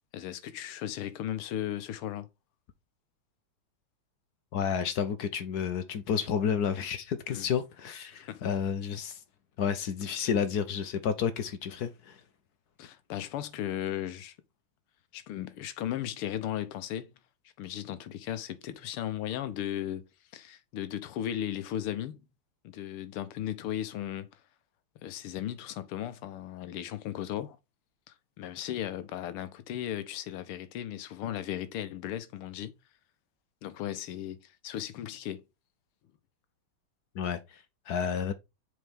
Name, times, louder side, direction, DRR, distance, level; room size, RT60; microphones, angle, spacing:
voice 1, 0.1-2.3 7.3-7.5 8.3-8.5 12.8-14.4 15.1-17.2 17.6-20.0 20.3-22.2 22.6-24.3 25.0-27.6 28.1-32.7 33.6-35.4, left 11 dB, 85° left, 1.7 m, -36 dB
voice 2, 4.5-9.2 9.6-12.2 37.1-38.3, left 7 dB, 65° left, 1.0 m, -31 dB
6.8 x 4.4 x 3.4 m
omnidirectional pair, 2.4 m